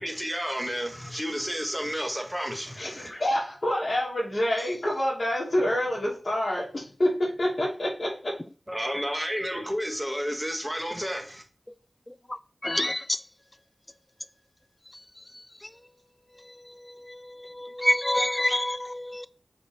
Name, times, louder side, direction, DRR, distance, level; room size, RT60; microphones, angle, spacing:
voice 1, 0.0-3.1 8.7-11.4, equal, 10° right, 1.6 m, -31 dB
voice 2, 2.8-8.3, left 1 dB, 45° left, 2.5 m, -27 dB
voice 3, 12.6-13.2 16.8-19.3, left 1 dB, 20° left, 0.5 m, -27 dB
5.9 x 4.2 x 5.0 m
wide cardioid pair, 60°, 0 cm